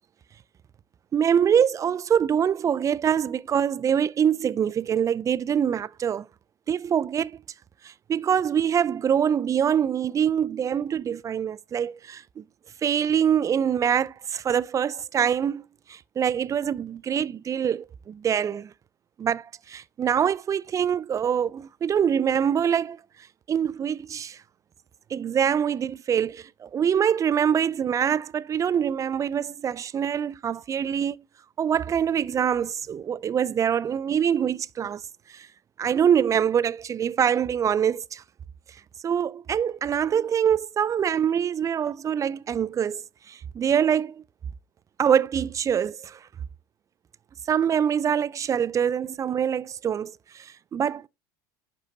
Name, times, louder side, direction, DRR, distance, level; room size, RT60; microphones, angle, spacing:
voice 1, 1.1-6.3 6.7-7.4 7.8-12.4 12.8-18.7 19.2-23.0 23.5-24.4 25.1-31.2 31.6-35.0 35.3-35.5 35.8-38.2 39.0-44.2 45.0-46.3 47.5-51.1, right 8 dB, 30° right, 0.3 m, -24 dB
11.5 x 3.9 x 2.7 m
hypercardioid pair, 80°, 11 cm